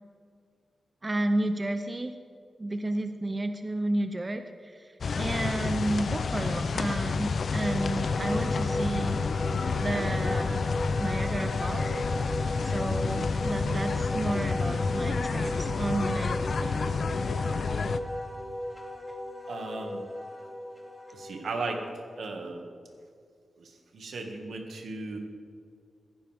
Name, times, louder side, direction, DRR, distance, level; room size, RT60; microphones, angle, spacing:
voice 1, 1.0-2.2 2.6-9.2 9.7-10.6 11.0-12.0 12.3-12.4 12.6-17.0, right 2 dB, 25° right, 7 dB, 0.7 m, -32 dB
sound 1, 5.0-18.0, left 4 dB, 60° left, 0.5 m, -29 dB
Wind instrument woodwind instrument, 7.6-22.2, left 1 dB, 10° left, 2.4 m, -36 dB
voice 2, 19.5-20.1 21.1-21.8 22.2-22.7 23.6-25.2, right 3 dB, 80° right, 2 dB, 2.0 m, -36 dB
15.5 x 15.5 x 3.6 m, 2.2 s
wide cardioid pair, 100°, 0 cm